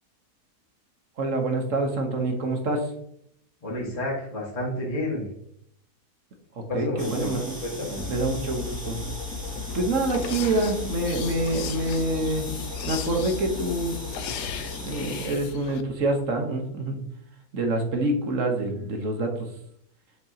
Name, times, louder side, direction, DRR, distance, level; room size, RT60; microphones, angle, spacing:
voice 1, 1.2-2.9 6.7-7.6 8.1-9.0 9.7-12.5 12.9-14.0 14.8-17.0 17.5-19.5, right 2 dB, 55° right, 3 dB, 1.5 m, -26 dB
voice 2, 3.6-5.3 6.7-7.3 7.6-8.1, left 1 dB, 20° left, -6 dB, 1.9 m, -30 dB
sound 1, 7.0-15.3, equal, 5° right, 2.9 m, -39 dB
sound 2, 8.0-16.2, left 6 dB, 60° left, 1.1 m, -37 dB
sound 3, 9.5-15.8, left 9 dB, 85° left, 1.2 m, -38 dB
7.6 x 5.9 x 2.9 m, 0.71 s
omnidirectional pair, 1.7 m